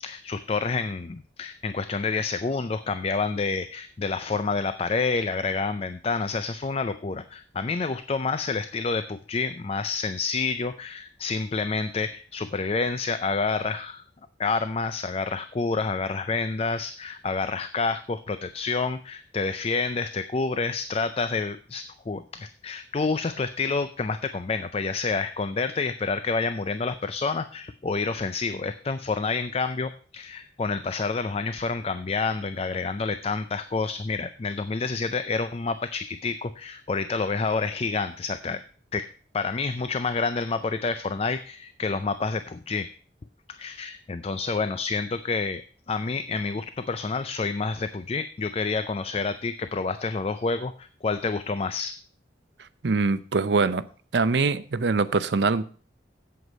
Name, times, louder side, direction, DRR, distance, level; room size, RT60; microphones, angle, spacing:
voice 1, 0.0-14.0 14.4-38.6 38.9-39.1 39.3-42.9 43.5-45.6 45.9-52.0, left 4 dB, 35° left, 0.4 m, -28 dB
voice 2, 52.8-53.8 54.1-55.6, right 4 dB, 70° right, 0.6 m, -23 dB
8.0 x 7.9 x 5.3 m
head